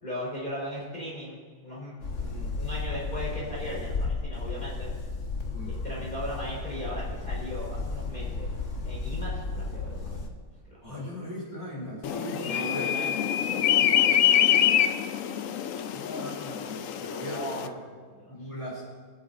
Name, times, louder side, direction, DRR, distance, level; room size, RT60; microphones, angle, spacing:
voice 1, 0.0-4.9 5.6-8.5 8.8-10.2 10.7-11.0 12.3-15.0 15.3-15.6 17.3-18.6, equal, 25° left, -6 dB, 4.6 m, -39 dB
sound 1, 2.0-10.3, left 3 dB, 45° left, 1.4 m, -33 dB
voice 2, 10.8-12.9 15.9-17.7 18.3-18.8, equal, 10° right, -6 dB, 3.9 m, -38 dB
sound 2, 12.0-17.7, left 10 dB, 75° left, 0.7 m, -25 dB
24.5 x 9.2 x 4.2 m, 1.5 s
omnidirectional pair, 2.0 m